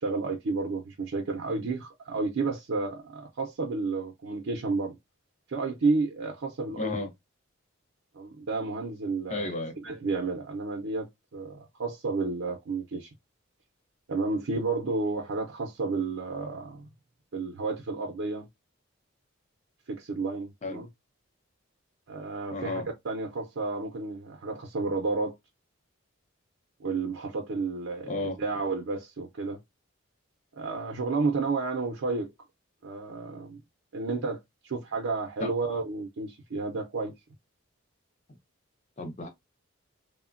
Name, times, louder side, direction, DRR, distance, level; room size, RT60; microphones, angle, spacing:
voice 1, 0.0-5.0 5.5-7.0 8.1-9.5 9.8-13.1 14.1-16.8 17.3-18.5 19.9-20.9 22.1-25.4 26.8-29.6 30.5-32.3 32.8-33.6 33.9-37.1, right 3 dB, 70° right, 0.5 m, -31 dB
voice 2, 6.8-7.1 9.3-9.7 20.6-20.8 22.5-22.9 28.1-28.4 35.4-35.5 39.0-39.3, left 2 dB, 35° left, 0.6 m, -33 dB
3.1 x 2.1 x 2.4 m
head